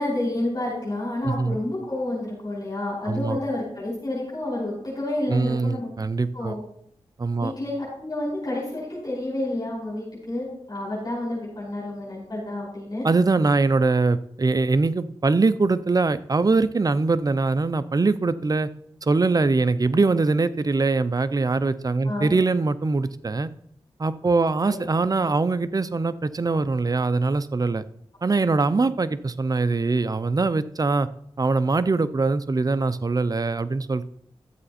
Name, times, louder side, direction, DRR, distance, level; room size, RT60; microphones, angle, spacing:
voice 1, 0.0-5.9 6.3-6.6 7.4-13.1 22.0-22.3 24.7-24.8, left 1 dB, 40° left, -5 dB, 5.5 m, -29 dB
voice 2, 1.2-1.6 3.1-3.4 5.3-6.6 7.2-7.5 13.0-18.7 19.0-23.5 24.0-27.8 28.2-31.1 31.4-34.0, right 3 dB, 40° right, 13 dB, 0.6 m, -22 dB
12.5 x 7.7 x 4.3 m, 0.69 s
cardioid pair, 60°, 10 cm